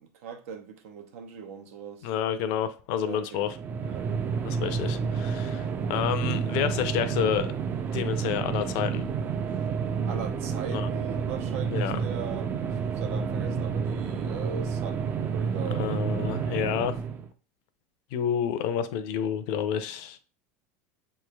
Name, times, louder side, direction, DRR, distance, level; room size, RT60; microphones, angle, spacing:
voice 1, 0.0-2.1 3.0-3.4 3.9-4.1 10.1-16.0 16.6-16.7, right 7 dB, 85° right, 0.8 m, -40 dB
voice 2, 2.0-3.6 4.4-7.5 7.9-9.0 10.7-10.9 11.7-11.9 15.7-17.0 18.1-20.2, left 8 dB, 60° left, 0.6 m, -29 dB
sound 1, 3.4-17.3, right 6 dB, 25° right, 0.4 m, -30 dB
6.6 x 3.2 x 2.3 m
supercardioid pair, 140°, 7 cm